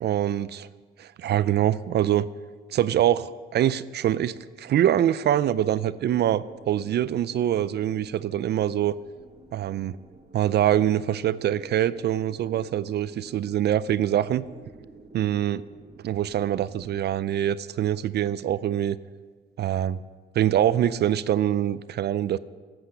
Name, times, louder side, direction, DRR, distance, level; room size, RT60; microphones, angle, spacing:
voice 1, 0.0-0.7 1.0-2.3 2.7-8.9 9.5-10.0 10.3-14.4 15.1-15.6 16.0-19.0 19.6-20.0 20.4-22.4, right 11 dB, 55° right, 17 dB, 0.4 m, -24 dB
sound 1, 2.7-17.0, right 2 dB, 30° right, 1.6 m, -52 dB
12.5 x 7.9 x 6.6 m, 1.5 s
cardioid pair, 90°, 20 cm